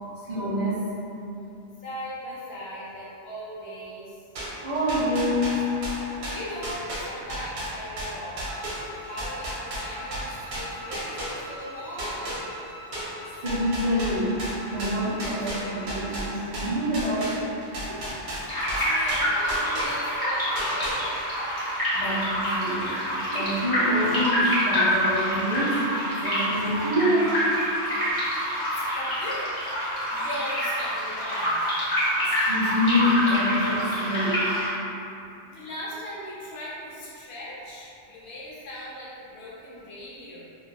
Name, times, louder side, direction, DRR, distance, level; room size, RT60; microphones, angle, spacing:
voice 1, 0.2-0.8 4.6-5.8 13.4-14.4 14.6-17.3 21.9-23.0 23.3-25.9 26.2-27.4 32.1-34.5, left 1 dB, 40° right, -13 dB, 0.4 m, -26 dB
voice 2, 1.8-4.2 6.3-8.5 8.9-12.4 17.8-18.0 18.3-21.2 28.7-29.5 30.1-31.6 35.5-40.4, left 1 dB, 70° left, -7 dB, 0.9 m, -38 dB
sound 1, 4.4-11.7 12.0-20.2 20.6-21.4, right 1 dB, 90° right, 0.9 m, -34 dB
Bowed string instrument, 8.4-16.2, equal, 60° right, 1.1 m, -45 dB
sound 2, 18.5-34.7, equal, 25° left, 0.7 m, -26 dB
2.8 x 2.2 x 2.2 m, 2.7 s
omnidirectional pair, 1.1 m